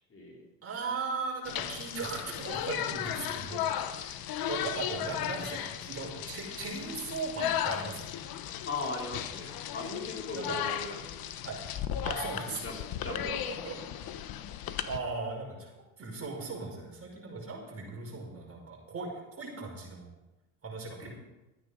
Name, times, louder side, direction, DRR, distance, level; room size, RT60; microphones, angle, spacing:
voice 1, 0.1-0.5 8.7-11.4 12.6-13.5 21.0-21.1, left 3 dB, 30° left, 0 dB, 3.2 m, -39 dB
voice 2, 0.6-4.2 4.5-8.2 10.4-10.6 11.4-11.6 12.0-12.7 13.1-13.8 14.8-19.1 19.4-20.1 20.6-21.1, right 4 dB, 30° right, -1 dB, 5.4 m, -38 dB
sound 1, 1.5-15.0, left 10 dB, 55° left, 1.1 m, -36 dB
14.0 x 9.3 x 5.2 m, 1.0 s
hypercardioid pair, 80°, 44 cm